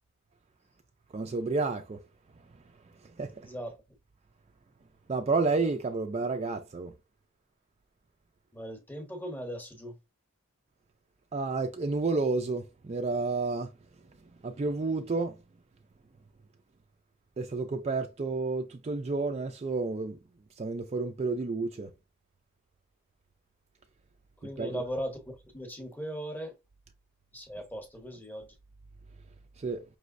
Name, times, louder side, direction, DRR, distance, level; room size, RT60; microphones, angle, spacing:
voice 1, 1.1-2.0 3.2-3.5 5.1-6.9 11.3-13.7 14.4-15.4 17.4-20.2 20.6-21.9 24.6-24.8 29.6-29.8, right 3 dB, 30° right, 0.3 m, -30 dB
voice 2, 3.4-3.8 8.5-10.0 24.4-26.5 27.3-28.5, equal, 10° left, 0.8 m, -38 dB
5.3 x 3.0 x 2.5 m
head